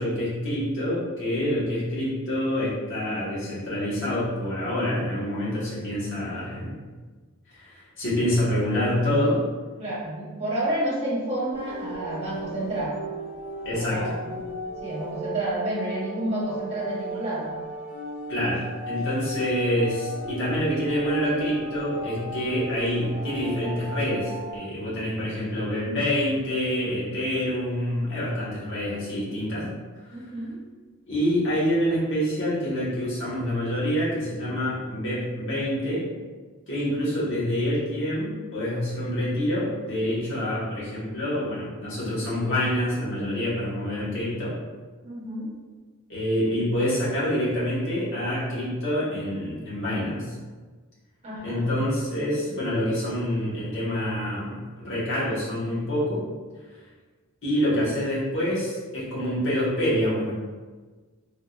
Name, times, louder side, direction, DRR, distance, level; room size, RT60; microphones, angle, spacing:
voice 1, 0.0-6.7 7.5-9.4 13.6-14.0 18.3-29.7 30.1-30.2 31.1-36.0 36.7-44.6 46.1-50.3 51.4-56.2 56.7-56.8 57.4-60.3, equal, 55° left, -8 dB, 1.3 m, -26 dB
voice 2, 9.8-12.9 13.7-17.6 30.1-30.6 45.0-45.5 51.2-51.7, right 1 dB, 30° right, -7 dB, 1.1 m, -30 dB
sound 1, 11.5-24.6, right 1 dB, 10° right, 1.2 m, -36 dB
3.5 x 2.7 x 2.4 m, 1.4 s
head